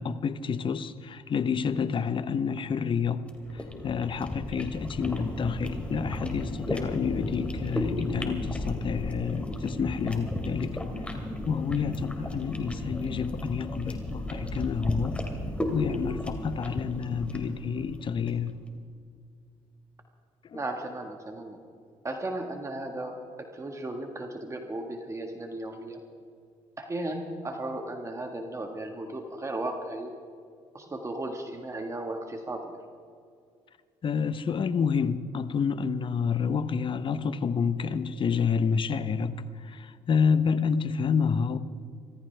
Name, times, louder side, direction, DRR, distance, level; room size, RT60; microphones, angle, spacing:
voice 1, 0.0-3.3 3.5-10.8 11.4-15.2 15.7-18.5 20.4-20.6 34.0-41.6, left 6 dB, 45° left, 13 dB, 0.9 m, -29 dB
sound 1, 3.2-18.5, left 1 dB, 10° left, 2.6 m, -34 dB
voice 2, 20.5-21.6 22.0-26.0 26.8-30.1 30.7-32.8, right 2 dB, 25° right, 3 dB, 1.7 m, -35 dB
26.0 x 14.0 x 3.4 m, 2.2 s
supercardioid pair, 80°, 12 cm